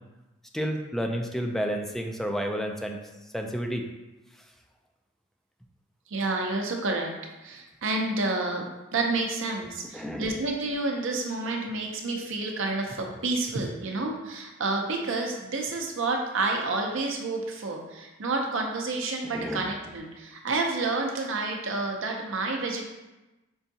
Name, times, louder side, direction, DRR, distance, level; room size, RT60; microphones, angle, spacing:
voice 1, 0.5-3.0 3.3-3.9 9.9-10.3 19.3-19.7, equal, ahead, 3 dB, 0.4 m, -30 dB
voice 2, 6.1-7.1 7.4-8.6 8.9-22.8, right 3 dB, 65° right, 2 dB, 0.7 m, -29 dB
5.5 x 3.5 x 2.7 m, 1.1 s
head